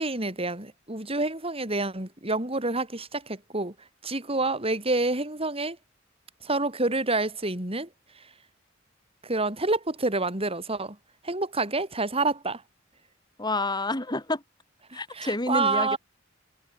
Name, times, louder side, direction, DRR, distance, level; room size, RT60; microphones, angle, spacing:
voice 1, 0.0-5.8 6.4-8.3 9.2-11.0 11.2-12.6 14.9-16.0, right 2 dB, 30° right, 6.0 m, -28 dB
voice 2, 13.4-14.4 14.9-16.0, left 2 dB, 20° left, 3.7 m, -29 dB
head